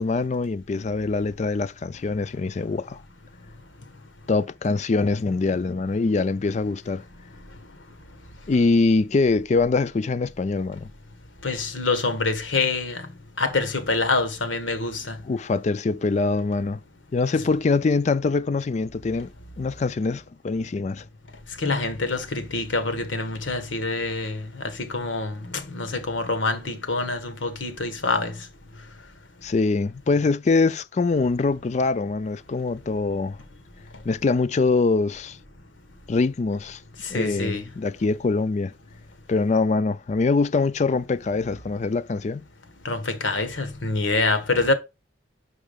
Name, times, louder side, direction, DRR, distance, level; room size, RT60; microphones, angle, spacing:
voice 1, 0.0-3.0 4.3-7.0 8.5-10.9 15.2-16.8 17.1-19.3 19.6-21.0 29.4-33.4 34.1-35.4 36.1-36.8 37.1-38.7 39.3-42.4, left 3 dB, 35° left, 0.3 m, -23 dB
voice 2, 11.4-13.0 13.4-15.2 21.6-24.4 24.8-25.3 25.7-28.3 37.1-37.6 42.8-44.7, left 3 dB, 90° left, 1.4 m, -25 dB
6.3 x 4.8 x 5.1 m
head